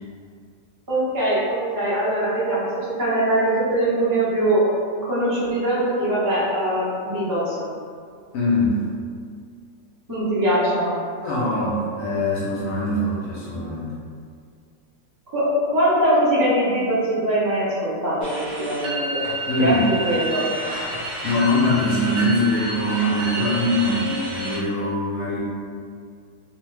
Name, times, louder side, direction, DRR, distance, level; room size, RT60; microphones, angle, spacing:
voice 1, 0.9-4.6 5.0-7.7 10.1-11.0 15.3-18.3 18.6-19.2 19.6-20.4 24.0-24.1, right 1 dB, 30° right, -10 dB, 0.3 m, -22 dB
voice 2, 8.3-8.8 11.2-13.9 19.5-19.8 21.2-25.4, left 1 dB, 70° left, -7 dB, 0.9 m, -22 dB
sound 1, 18.2-24.6, right 1 dB, 70° right, 1.0 m, -30 dB
2.9 x 2.1 x 3.1 m, 2.2 s
omnidirectional pair, 1.7 m